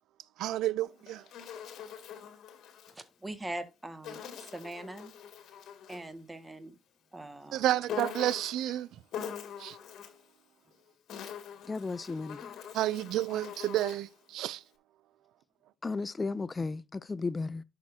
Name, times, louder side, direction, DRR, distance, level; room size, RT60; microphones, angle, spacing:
voice 1, 0.4-1.2 7.5-8.9 9.6-9.8 12.7-14.6, right 13 dB, 85° right, 0.4 m, -30 dB
Insect, 0.8-3.0 4.0-6.1 7.9-8.7 9.1-10.3 10.9-14.1, left 8 dB, 75° left, 2.2 m, -43 dB
voice 2, 2.9-5.1 5.9-6.8 7.1-7.8, right 1 dB, 15° right, 1.7 m, -42 dB
voice 3, 11.7-12.6 15.8-17.6, left 3 dB, 30° left, 0.4 m, -34 dB
11.5 x 6.4 x 2.7 m
cardioid pair, 90°, 0 cm